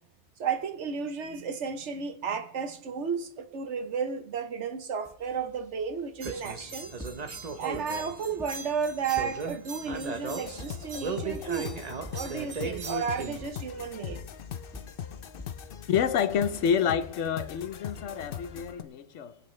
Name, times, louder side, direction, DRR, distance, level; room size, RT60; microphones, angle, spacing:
voice 1, 0.4-6.9 7.6-11.8 12.1-14.2, right 6 dB, 75° right, 1.3 m, -33 dB
sound 1, 5.0-15.8, right 1 dB, 5° left, 1.4 m, -50 dB
sound 2, 6.2-13.5, right 4 dB, 35° right, 1.0 m, -37 dB
sound 3, 10.4-18.8, left 8 dB, 55° left, 0.8 m, -41 dB
voice 2, 15.9-19.4, left 8 dB, 90° left, 1.1 m, -28 dB
22.5 x 8.6 x 3.2 m
omnidirectional pair, 1.2 m